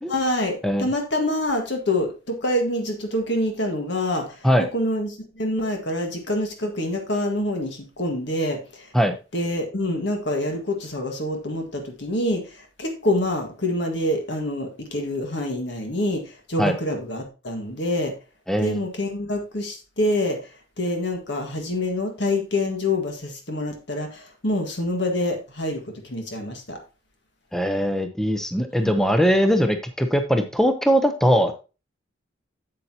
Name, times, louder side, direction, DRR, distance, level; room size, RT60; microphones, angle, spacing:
voice 1, 0.1-4.4 4.7-8.9 9.3-18.1 18.6-20.5 20.8-26.8 28.8-28.9, left 1 dB, 60° left, 3 dB, 1.6 m, -26 dB
voice 2, 18.5-18.8 27.5-31.5, equal, ahead, 7 dB, 0.6 m, -20 dB
8.4 x 8.0 x 2.8 m, 0.31 s
head